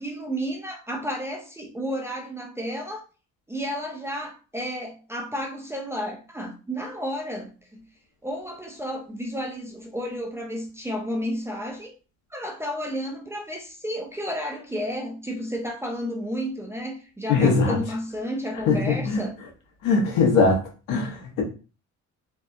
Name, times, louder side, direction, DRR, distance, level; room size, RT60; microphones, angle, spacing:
voice 1, 0.0-3.0 3.5-7.9 8.2-11.9 12.3-19.4, equal, 10° right, 0.3 m, -32 dB
voice 2, 17.3-17.8 18.7-19.2 19.8-20.6 20.9-21.4, left 4 dB, 85° left, 1.1 m, -20 dB
3.3 x 2.2 x 2.5 m
cardioid pair, 155°, 30 cm